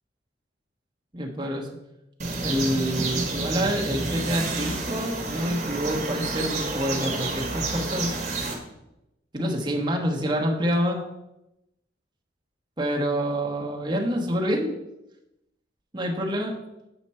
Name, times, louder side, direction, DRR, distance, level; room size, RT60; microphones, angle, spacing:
voice 1, 1.1-1.7 2.4-8.1 9.3-11.0 12.8-14.7 15.9-16.6, equal, 25° right, -1 dB, 1.1 m, -27 dB
sound 1, 2.2-8.5, right 3 dB, 40° right, 1.3 m, -29 dB
8.0 x 5.1 x 4.2 m, 0.89 s
head